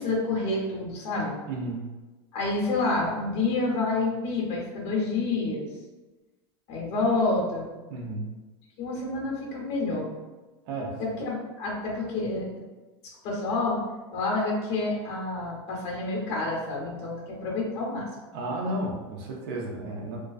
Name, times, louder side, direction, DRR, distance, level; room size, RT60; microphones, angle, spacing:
voice 1, 0.0-1.3 2.3-5.6 6.7-7.7 8.8-10.1 11.2-12.5 13.2-13.8 14.1-18.1, left 3 dB, 45° left, -2 dB, 0.9 m, -28 dB
voice 2, 1.5-2.0 7.9-8.3 10.6-11.0 18.3-20.2, right 1 dB, 60° right, -2 dB, 0.6 m, -33 dB
2.3 x 2.3 x 2.4 m, 1.2 s
supercardioid pair, 140°, 14 cm